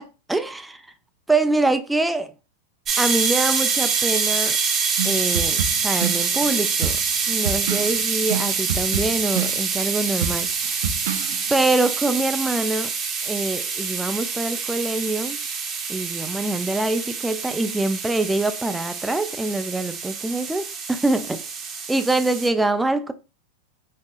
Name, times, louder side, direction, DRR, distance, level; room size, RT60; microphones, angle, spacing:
voice 1, 0.3-0.8 1.3-2.3 3.0-4.6 5.0-7.0 7.3-10.7 11.5-12.9 13.2-15.4 15.9-21.4 21.9-23.1, right 2 dB, 5° right, 0.3 m, -24 dB
sound 1, 2.9-22.5, right 5 dB, 25° right, 0.7 m, -26 dB
sound 2, 5.0-11.6, right 7 dB, 80° right, 0.4 m, -29 dB
3.5 x 2.8 x 2.3 m
hypercardioid pair, 125°, 0 cm